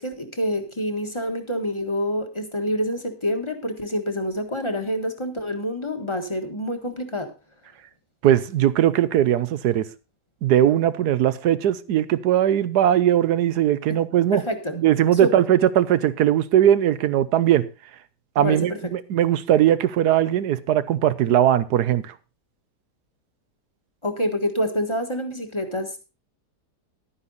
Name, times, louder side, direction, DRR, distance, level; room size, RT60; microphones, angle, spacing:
voice 1, 0.0-7.3 13.9-14.0 14.3-14.8 15.2-15.4 18.4-18.8 24.0-26.1, equal, 20° left, 6 dB, 1.4 m, -27 dB
voice 2, 8.2-9.9 10.4-14.4 14.7-17.7 18.4-22.1, right 11 dB, 75° right, 15 dB, 1.3 m, -19 dB
11.5 x 9.7 x 4.0 m, 0.30 s
omnidirectional pair, 1.7 m